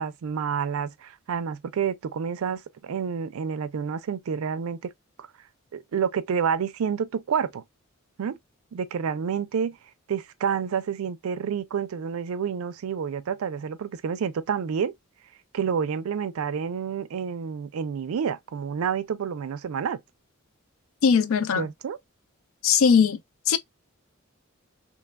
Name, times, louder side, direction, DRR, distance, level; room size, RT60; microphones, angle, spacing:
voice 1, 0.0-4.9 5.2-5.3 5.7-7.6 8.2-8.4 8.7-9.8 10.1-14.9 15.5-20.0 21.6-22.0, right 7 dB, 90° right, 0.4 m, -29 dB
voice 2, 21.0-21.7 22.6-23.2 23.5-23.6, left 6 dB, 75° left, 0.4 m, -19 dB
3.1 x 2.2 x 2.2 m
head